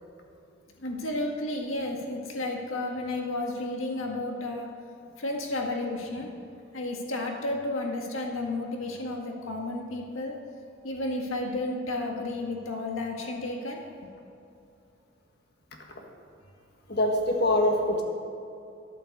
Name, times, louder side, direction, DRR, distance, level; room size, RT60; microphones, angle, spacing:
voice 1, 0.8-4.7 5.2-6.3 6.7-10.3 10.8-13.8, left 2 dB, 85° left, 1 dB, 1.7 m, -32 dB
voice 2, 16.9-18.0, left 1 dB, 55° left, 1 dB, 1.7 m, -24 dB
11.5 x 8.9 x 6.6 m, 2.6 s
head